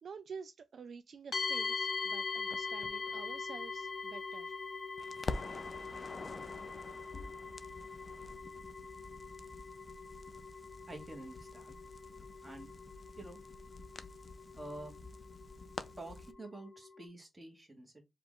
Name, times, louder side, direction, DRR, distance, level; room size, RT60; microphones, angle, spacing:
voice 1, 0.0-4.6, right 6 dB, 55° right, 0.3 m, -49 dB
sound 1, 1.3-17.0, left 4 dB, 55° left, 0.9 m, -42 dB
Crackle, 2.5-4.7 5.0-16.3, left 3 dB, 35° left, 0.4 m, -48 dB
voice 2, 10.9-11.8 12.4-12.7 13.2-13.4 14.6-14.9 16.0-18.0, right 1 dB, 15° right, 1.4 m, -48 dB
4.8 x 2.4 x 3.6 m
wide cardioid pair, 155°, 0 cm